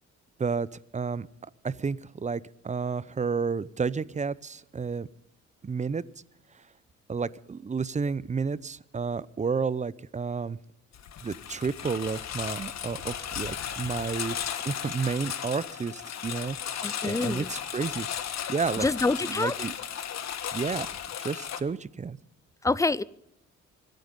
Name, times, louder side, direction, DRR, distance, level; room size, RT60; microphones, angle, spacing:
voice 1, 0.9-1.3 1.6-5.1 5.6-6.0 7.1-10.6 11.2-18.1 18.5-18.9 19.2-19.7 20.5-22.2, right 5 dB, 25° right, 0.6 m, -31 dB
Engine, 10.9-21.6, left 9 dB, 60° left, 1.4 m, -35 dB
voice 2, 16.8-17.5 18.8-19.5 22.6-23.0, left 3 dB, 10° left, 0.5 m, -26 dB
25.0 x 9.3 x 5.3 m
cardioid pair, 90°, 30 cm